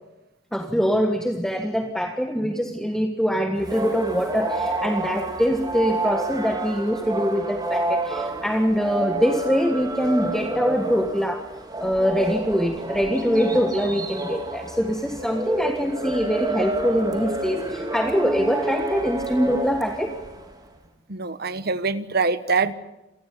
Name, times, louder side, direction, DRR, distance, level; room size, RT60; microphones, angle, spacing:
voice 1, 0.5-11.4 11.8-20.1, equal, 5° left, 5 dB, 1.6 m, -23 dB
sound 1, 3.6-20.6, right 1 dB, 20° right, 3.7 m, -29 dB
voice 2, 21.1-22.7, right 4 dB, 55° right, 13 dB, 1.4 m, -24 dB
27.5 x 19.5 x 8.4 m, 0.97 s
head